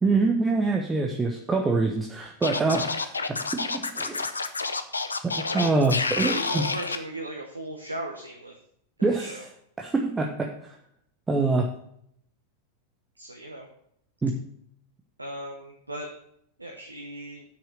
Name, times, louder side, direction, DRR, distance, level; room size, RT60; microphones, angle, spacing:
voice 1, 0.0-4.2 5.2-6.6 9.0-9.4 9.8-10.7 11.3-11.7 14.2-14.4, right 3 dB, 15° right, 2 dB, 1.1 m, -25 dB
Scratching (performance technique), 2.4-7.0, left 4 dB, 75° left, 0.7 m, -29 dB
voice 2, 5.4-5.8 6.2-8.5 9.0-9.5 13.2-13.7 15.2-16.1 16.6-17.4, right 1 dB, 85° right, 1 dB, 1.2 m, -37 dB
8.3 x 6.2 x 6.3 m, 0.69 s
figure-of-eight pair, 90°, 0 cm